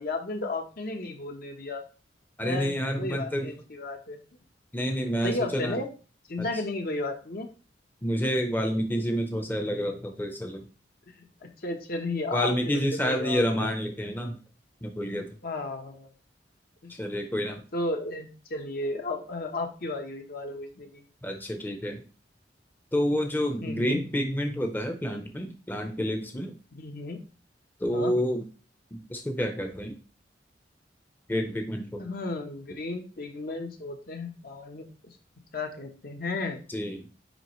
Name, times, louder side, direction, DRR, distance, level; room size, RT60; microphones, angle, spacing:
voice 1, 0.0-1.8 2.4-4.2 5.2-5.9 6.3-7.5 11.2-13.7 15.4-16.1 16.8-16.9 17.7-21.0 23.6-24.0 26.7-27.2 27.9-28.1 32.0-35.2 35.5-36.6, left 2 dB, 55° left, 4 dB, 1.0 m, -34 dB
voice 2, 2.4-3.5 4.7-5.8 6.4-6.5 8.0-10.6 12.3-14.4 14.8-15.3 17.0-17.6 21.2-22.0 22.9-26.5 27.8-28.5 28.9-30.0 31.3-32.0 36.7-37.1, equal, 10° left, 4 dB, 0.7 m, -29 dB
9.5 x 3.4 x 3.1 m, 0.36 s
head